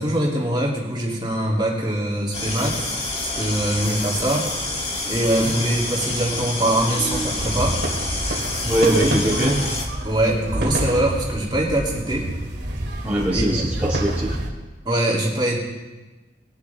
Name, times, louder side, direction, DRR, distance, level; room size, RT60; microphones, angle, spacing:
voice 1, 0.0-4.5 5.1-7.8 8.8-9.2 10.0-12.3 13.3-13.6 14.8-15.6, right 1 dB, 25° right, -4 dB, 2.8 m, -23 dB
sound 1, 2.3-9.8, left 2 dB, 35° left, 1.8 m, -28 dB
sound 2, 7.1-14.5, right 1 dB, 60° right, 2.3 m, -28 dB
voice 2, 8.6-9.6 13.0-14.5, right 1 dB, 10° right, -8 dB, 2.1 m, -22 dB
21.5 x 11.5 x 3.5 m, 1.2 s
head